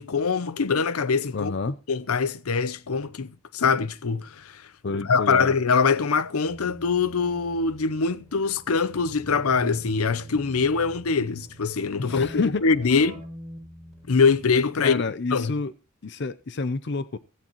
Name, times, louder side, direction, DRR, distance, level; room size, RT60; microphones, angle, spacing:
voice 1, 0.0-1.5 1.9-4.6 4.9-13.2 14.1-15.0 15.3-15.5, left 5 dB, 90° left, 0.7 m, -23 dB
voice 2, 1.3-1.8 4.8-5.5 12.0-12.6 14.8-15.7 16.0-17.2, left 3 dB, 55° left, 0.6 m, -29 dB
Keyboard (musical), 6.4-14.8, equal, ahead, 7.3 m, -46 dB
sound 1, 8.9-13.0, right 3 dB, 90° right, 1.0 m, -45 dB
16.0 x 14.5 x 3.0 m
head